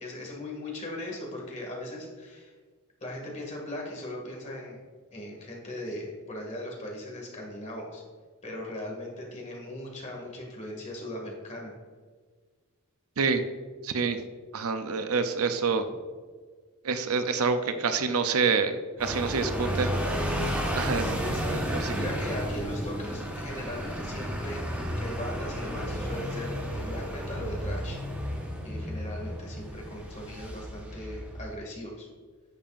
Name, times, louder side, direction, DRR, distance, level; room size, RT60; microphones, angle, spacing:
voice 1, 0.0-2.5 3.0-4.8 5.1-8.0 8.4-11.7 21.0-26.5 26.7-28.0 28.6-32.1, left 1 dB, 35° left, -1 dB, 2.2 m, -39 dB
voice 2, 13.8-14.2 14.5-15.8 16.8-19.9 20.7-21.2 21.5-21.9, right 5 dB, 80° right, 8 dB, 0.6 m, -27 dB
sound 1, 19.0-31.6, equal, 5° right, 1.2 m, -32 dB
11.0 x 6.9 x 2.5 m, 1.5 s
head